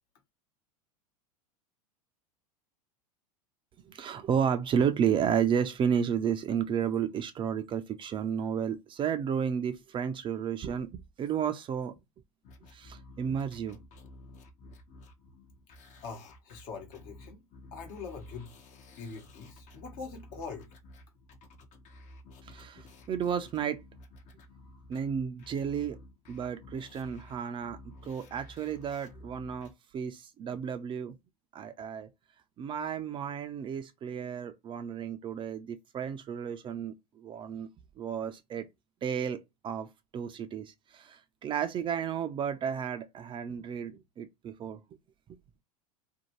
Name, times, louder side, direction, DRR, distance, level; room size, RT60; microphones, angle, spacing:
voice 1, 3.9-11.9 12.7-13.8 22.4-23.8 24.9-26.0 26.3-31.1 31.5-32.1 32.6-37.7 38.0-38.7 39.0-44.8, right 8 dB, 25° right, 0.3 m, -32 dB
sound 1, 12.4-29.7, left 1 dB, 40° left, 0.6 m, -52 dB
voice 2, 16.0-17.4 17.7-18.5 19.0-20.7, left 5 dB, 60° left, 1.1 m, -43 dB
2.6 x 2.1 x 2.9 m
hypercardioid pair, 100°, 19 cm